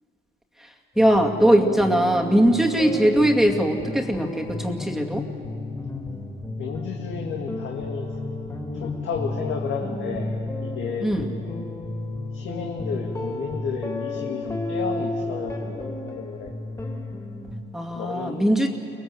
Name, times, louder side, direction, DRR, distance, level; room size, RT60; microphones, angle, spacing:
sound 1, 1.0-17.6, left 2 dB, 15° left, 3.5 m, -32 dB
voice 1, 1.0-5.2 11.0-11.3 17.7-18.7, right 1 dB, ahead, 1 dB, 2.3 m, -20 dB
voice 2, 6.6-8.1 8.7-10.4 10.6-11.1 11.4-11.6 12.3-16.5 17.9-18.5, left 6 dB, 75° left, 0 dB, 2.1 m, -32 dB
24.5 x 20.0 x 7.9 m, 2.6 s
cardioid pair, 90°, 20 cm